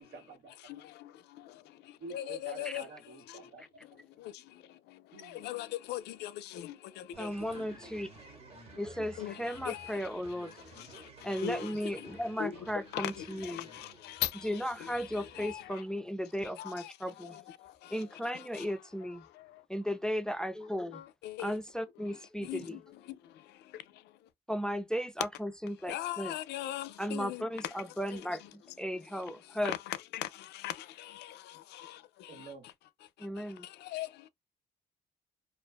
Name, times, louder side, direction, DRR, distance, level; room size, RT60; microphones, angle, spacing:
voice 1, 0.0-0.5 2.0-3.6 5.1-5.5 7.4-7.8 22.4-22.5 32.3-32.6, right 3 dB, 75° right, 1.2 m, -49 dB
voice 2, 0.6-7.7 8.6-10.1 10.6-15.8 16.6-18.7 19.2-19.6 20.9-21.6 22.1-22.2 22.4-24.3 25.9-27.7 28.1-28.3 29.1-32.7 33.0-34.3, left 13 dB, 85° left, 0.4 m, -42 dB
sound 1, 7.1-15.7, right 3 dB, 35° right, 1.0 m, -54 dB
voice 3, 7.2-8.1 8.8-10.6 11.2-13.7 14.4-17.4 17.9-19.2 19.7-21.0 21.4-22.8 24.5-26.3 27.0-29.7 33.2-33.7, equal, 5° left, 0.4 m, -36 dB
2.4 x 2.2 x 2.3 m
cardioid pair, 95°, 17 cm